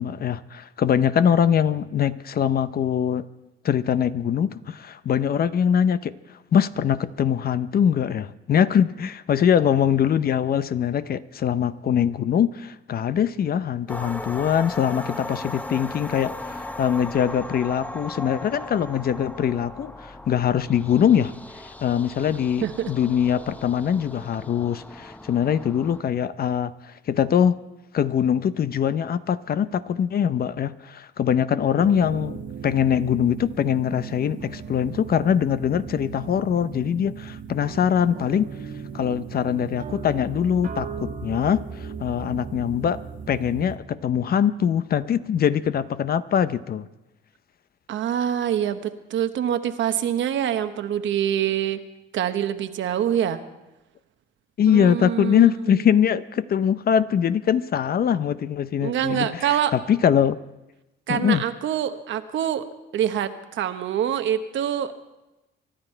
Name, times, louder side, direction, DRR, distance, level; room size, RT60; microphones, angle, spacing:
voice 1, 0.0-3.3 3.6-6.1 6.5-27.6 27.9-32.4 32.6-38.5 38.9-43.0 43.3-46.9 54.6-60.4 61.1-61.4, left 8 dB, 50° left, 15 dB, 0.6 m, -22 dB
sound 1, 13.9-26.0, left 1 dB, 10° left, 0.6 m, -38 dB
voice 2, 22.6-22.9 47.9-51.8 52.1-53.4 54.7-55.8 58.8-59.7 61.1-62.7 62.9-64.9, right 10 dB, 75° right, 9 dB, 1.0 m, -25 dB
sound 2, 31.8-43.8, right 6 dB, 45° right, 1.4 m, -37 dB
24.5 x 11.5 x 4.5 m, 0.99 s
cardioid pair, 90°, 20 cm